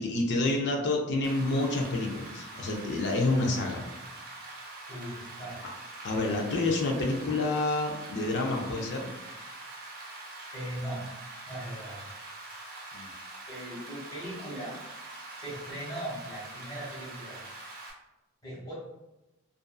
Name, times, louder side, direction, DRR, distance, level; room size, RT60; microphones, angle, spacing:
voice 1, 0.0-3.8 6.0-9.1 12.9-13.1, left 2 dB, 55° left, 1 dB, 0.5 m, -28 dB
Rain, 1.2-17.9, right 2 dB, 45° right, 0.6 m, -44 dB
voice 2, 4.9-5.7 6.3-6.6 10.5-11.0 11.5-12.0 13.5-14.8 15.4-17.4 18.4-18.7, right 1 dB, 20° left, -6 dB, 1.1 m, -39 dB
2.5 x 2.4 x 2.3 m, 0.96 s
head